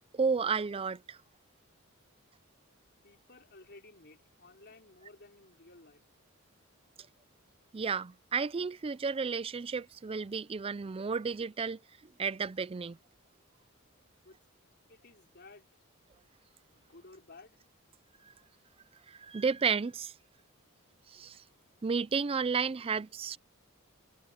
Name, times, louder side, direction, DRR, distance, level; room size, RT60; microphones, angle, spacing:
voice 1, 0.1-1.2 7.7-13.0 18.2-18.3 19.1-20.1 21.1-21.4 21.8-23.4, right 5 dB, 25° right, 0.4 m, -32 dB
voice 2, 3.0-6.0 14.2-14.4 14.9-15.7 16.7-17.6, left 3 dB, 50° left, 4.0 m, -55 dB
head